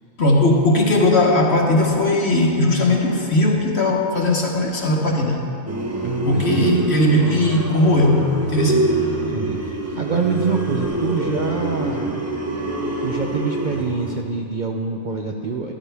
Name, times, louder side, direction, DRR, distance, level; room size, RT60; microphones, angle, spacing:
voice 1, 0.2-5.4 6.2-8.9, left 1 dB, 45° left, 0 dB, 1.3 m, -18 dB
sound 1, 5.7-14.2, right 2 dB, 15° right, 0.5 m, -25 dB
voice 2, 6.0-6.9 9.3-12.2 13.0-15.7, right 5 dB, 75° right, 1 dB, 0.4 m, -26 dB
13.5 x 12.5 x 3.4 m, 2.6 s
omnidirectional pair, 1.6 m